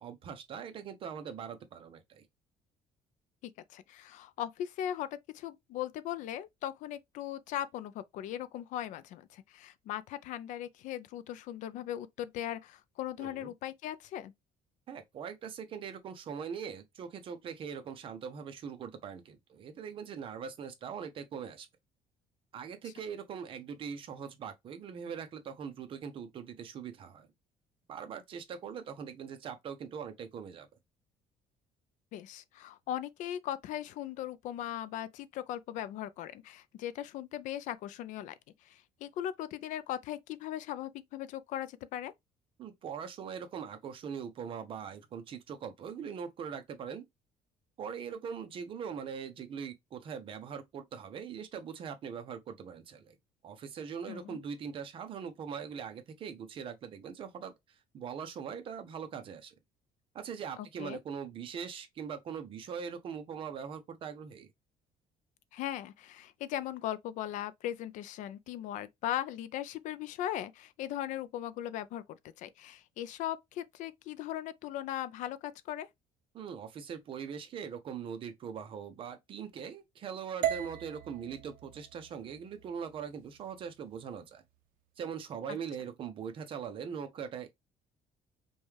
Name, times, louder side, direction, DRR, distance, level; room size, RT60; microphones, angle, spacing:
voice 1, 0.0-2.2 13.2-13.5 14.9-21.7 22.5-27.3 27.9-30.7 42.6-47.0 47.8-53.1 53.4-57.5 57.9-59.5 60.1-64.5 76.3-84.4 85.0-87.5, right 7 dB, 40° right, 0.7 m, -41 dB
voice 2, 3.4-14.3 22.8-22.9 32.1-38.3 38.6-42.1 54.1-54.4 60.6-61.0 65.5-75.9, left 12 dB, 60° left, 0.4 m, -39 dB
sound 1, 80.4-84.6, right 11 dB, 85° right, 0.5 m, -39 dB
5.3 x 2.3 x 3.2 m
cardioid pair, 175°, 14 cm